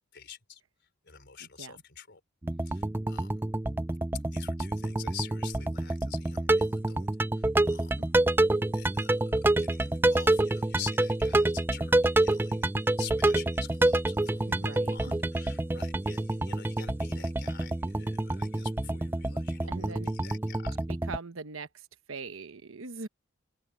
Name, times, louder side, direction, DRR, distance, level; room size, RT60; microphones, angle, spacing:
voice 1, 0.1-0.6 1.0-2.2 2.6-3.4 4.3-7.1 7.3-8.1 8.7-20.8, left 9 dB, 55° left, 4.2 m, -47 dB
voice 2, 1.4-1.8 14.5-15.0 19.7-20.1 20.9-23.1, right 4 dB, 70° right, 1.1 m, -41 dB
sound 1, 2.4-21.2, right 2 dB, 10° right, 0.4 m, -28 dB
open air
head